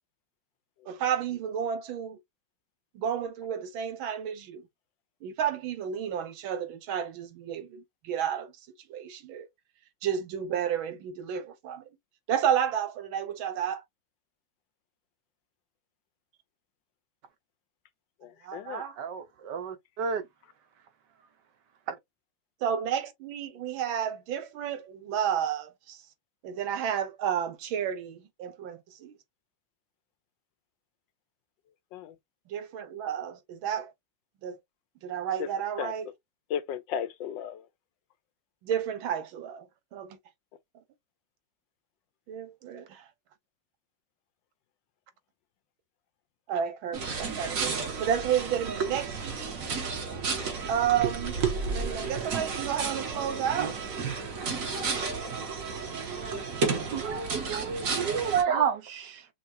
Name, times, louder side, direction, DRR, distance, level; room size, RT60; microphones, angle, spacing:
voice 1, 0.9-2.2 3.0-4.7 5.2-8.5 8.9-9.5 10.0-11.8 12.3-13.8 18.4-19.0 22.6-26.0 26.4-29.2 32.5-33.9 34.4-34.6 35.0-36.1 38.6-40.2 42.3-43.1 46.5-49.5 50.7-51.4 51.7-53.8, right 9 dB, 85° right, 1.7 m, -31 dB
voice 2, 18.2-18.8 31.9-32.1 35.4-35.5 35.8-35.9 36.5-37.6, left 9 dB, 75° left, 1.2 m, -34 dB
voice 3, 19.0-20.3 21.9-22.0 56.9-59.3, right 7 dB, 65° right, 1.4 m, -30 dB
sound 1, 46.9-58.4, right 5 dB, 50° right, 1.4 m, -32 dB
5.9 x 2.4 x 2.6 m
omnidirectional pair, 2.1 m